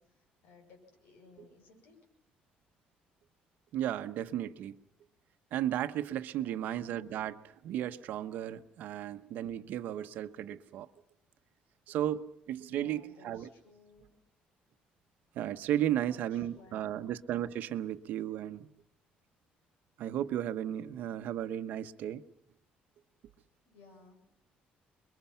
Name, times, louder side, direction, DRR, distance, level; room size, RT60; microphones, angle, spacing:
voice 1, 0.0-1.9 6.3-6.7 12.6-14.2 15.9-17.0 23.6-24.2, left 3 dB, 80° left, 7.8 m, -59 dB
voice 2, 3.7-4.8 5.5-10.9 11.9-13.5 15.3-18.7 20.0-22.2, right 11 dB, 70° right, 1.1 m, -34 dB
29.0 x 22.5 x 5.8 m
cardioid pair, 140°, 3 cm